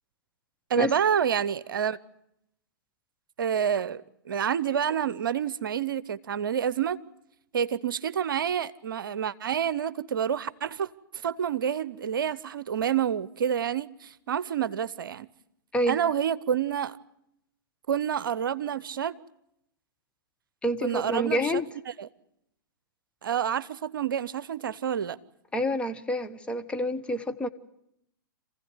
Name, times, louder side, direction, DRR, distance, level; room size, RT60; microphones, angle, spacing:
voice 1, 0.7-2.0 3.4-7.0 7.5-15.3 15.9-17.0 17.9-19.1 20.8-21.6 22.0-22.1 23.2-25.2, right 8 dB, 70° right, 0.8 m, -28 dB
voice 2, 20.6-21.7 25.5-27.5, equal, 10° left, 1.2 m, -28 dB
27.0 x 15.5 x 9.6 m
figure-of-eight pair, 110°, 12 cm